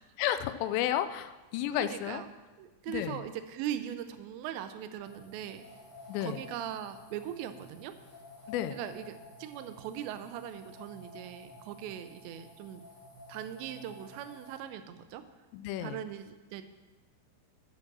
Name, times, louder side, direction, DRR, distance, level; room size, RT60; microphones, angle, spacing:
voice 1, 0.2-2.2 2.9-3.2 6.1-6.4 8.5-8.8 15.5-16.0, left 12 dB, 85° left, 10 dB, 2.7 m, -32 dB
voice 2, 1.8-2.3 2.6-5.6 6.2-7.9 8.7-9.1 9.4-12.8 13.3-15.2 15.8-16.6, right 10 dB, 85° right, 10 dB, 2.9 m, -40 dB
sound 1, 5.0-14.6, left 2 dB, 55° left, 5.1 m, -52 dB
10.5 x 6.0 x 6.0 m, 1.2 s
omnidirectional pair, 5.0 m